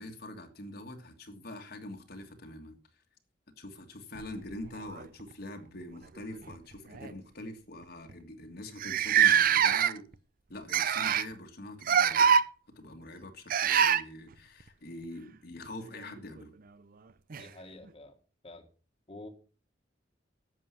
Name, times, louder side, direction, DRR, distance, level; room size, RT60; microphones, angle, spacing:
voice 1, 0.0-2.8 3.6-10.1 10.5-12.4 12.7-16.5, left 1 dB, 60° left, 1.8 m, -44 dB
sound 1, 4.1-5.3 6.4-6.5 6.9-7.1 7.8-7.9 8.1-8.2 8.8-10.1 10.7-11.3 11.8-12.4 13.5-14.0 16.2-16.3 17.3-17.4, right 8 dB, 50° right, 0.5 m, -24 dB
voice 2, 17.4-18.1 18.4-18.6 19.1-19.3, left 2 dB, 30° left, 1.6 m, -47 dB
11.0 x 7.5 x 5.8 m
head